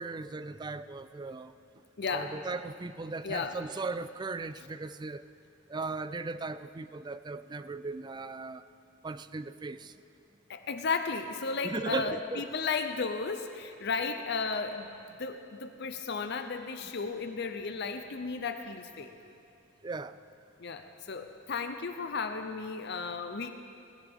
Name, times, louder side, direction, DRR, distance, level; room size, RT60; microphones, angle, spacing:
voice 1, 0.0-1.5 2.1-5.2 5.7-8.6 9.0-9.9 11.6-12.5 19.8-20.2, right 3 dB, 20° right, 13 dB, 0.3 m, -37 dB
voice 2, 2.0-2.4 3.2-3.6 10.5-14.9 15.2-19.1 20.6-23.5, left 4 dB, 55° left, 7 dB, 0.6 m, -34 dB
20.0 x 16.5 x 3.6 m, 2.6 s
head